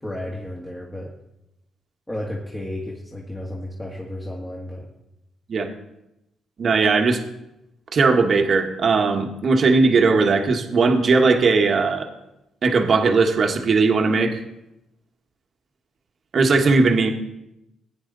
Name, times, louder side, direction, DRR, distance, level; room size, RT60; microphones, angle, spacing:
voice 1, 0.0-1.1 2.1-4.9, left 1 dB, 15° left, -3 dB, 2.0 m, -32 dB
voice 2, 6.6-7.2 7.9-12.1 12.6-14.4 16.3-17.1, right 4 dB, 50° right, 4 dB, 1.5 m, -18 dB
16.5 x 9.2 x 4.0 m, 0.88 s
cardioid pair, 90°, 0 cm